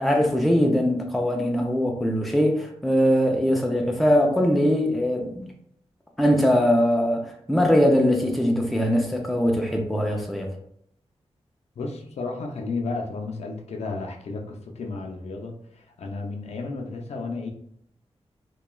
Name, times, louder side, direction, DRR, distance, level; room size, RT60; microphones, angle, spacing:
voice 1, 0.0-5.5 6.2-10.5, equal, ahead, 0.3 m, -21 dB
voice 2, 11.8-17.5, left 3 dB, 75° left, 0.5 m, -33 dB
2.9 x 2.2 x 2.3 m
wide cardioid pair, 165°, 11 cm